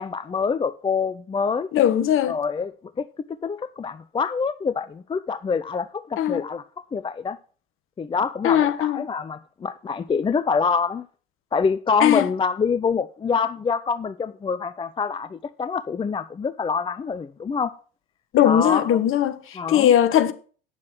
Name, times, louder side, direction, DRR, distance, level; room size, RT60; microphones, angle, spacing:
voice 1, 0.0-1.7 2.3-3.1 3.4-7.4 8.0-11.0 11.5-17.7 18.4-19.0 19.5-19.9, left 5 dB, 15° left, 0.5 m, -26 dB
voice 2, 1.7-2.4 6.2-6.4 8.4-9.0 12.0-12.3 18.3-19.4 19.7-20.3, left 10 dB, 45° left, 1.3 m, -19 dB
9.4 x 7.1 x 6.0 m
hypercardioid pair, 75°, 29 cm